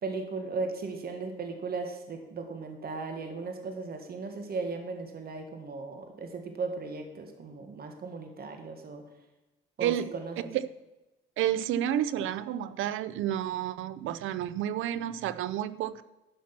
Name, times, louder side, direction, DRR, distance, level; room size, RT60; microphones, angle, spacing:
voice 1, 0.0-9.1 9.8-10.5, right 4 dB, 50° right, 5 dB, 1.7 m, -37 dB
voice 2, 11.4-16.0, right 11 dB, 85° right, 15 dB, 0.5 m, -30 dB
11.5 x 6.0 x 6.0 m, 1.0 s
cardioid pair, 90°, 20 cm